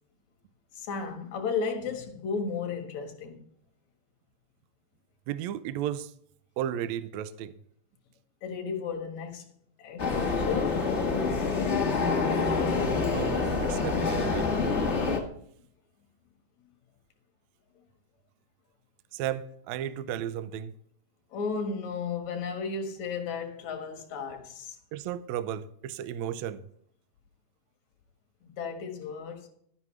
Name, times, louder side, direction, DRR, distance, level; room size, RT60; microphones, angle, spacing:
voice 1, 0.7-3.4 8.4-9.5 9.8-10.9 21.3-24.8 28.4-29.5, left 5 dB, 65° left, 2.8 m, -34 dB
voice 2, 5.3-6.1 6.6-7.5 13.1-14.5 19.1-20.7 24.9-26.7, right 10 dB, 80° right, 1.7 m, -34 dB
sound 1, 10.0-15.2, left 4 dB, 35° left, 1.0 m, -27 dB
12.0 x 9.8 x 3.2 m
omnidirectional pair, 3.6 m